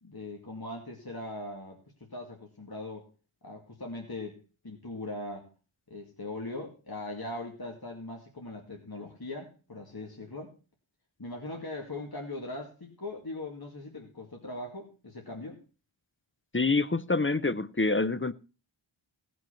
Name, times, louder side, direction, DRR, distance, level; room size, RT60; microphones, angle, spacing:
voice 1, 0.0-1.8 2.1-3.1 3.4-5.5 5.9-10.5 11.2-15.6, left 2 dB, 50° left, 0 dB, 2.5 m, -40 dB
voice 2, 16.5-18.3, left 3 dB, 25° left, 15 dB, 0.6 m, -26 dB
17.5 x 6.3 x 5.7 m, 0.35 s
wide cardioid pair, 45°, 49 cm